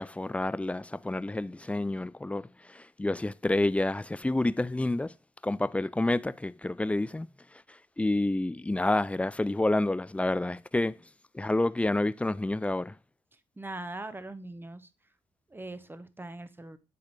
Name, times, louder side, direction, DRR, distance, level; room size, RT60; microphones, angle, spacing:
voice 1, 0.0-5.1 5.4-7.3 8.0-11.0 11.3-13.0, left 2 dB, 10° left, 0.3 m, -29 dB
voice 2, 13.6-14.9 15.5-16.8, right 2 dB, 15° right, 0.9 m, -41 dB
8.7 x 4.1 x 3.2 m
supercardioid pair, 50°, 14 cm